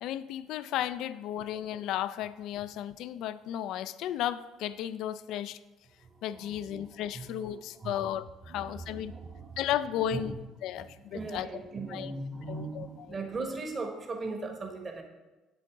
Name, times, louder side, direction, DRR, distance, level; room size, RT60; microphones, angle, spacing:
voice 1, 0.0-5.6 6.2-9.1 9.6-10.3 10.6-11.5 11.9-12.1 12.5-12.9, left 11 dB, 70° left, 15 dB, 0.3 m, -34 dB
voice 2, 6.0-8.1 8.5-9.6 9.9-10.3 10.6-15.0, right 3 dB, 35° right, 3 dB, 1.3 m, -39 dB
7.7 x 7.5 x 3.6 m, 1.1 s
supercardioid pair, 75°, 0 cm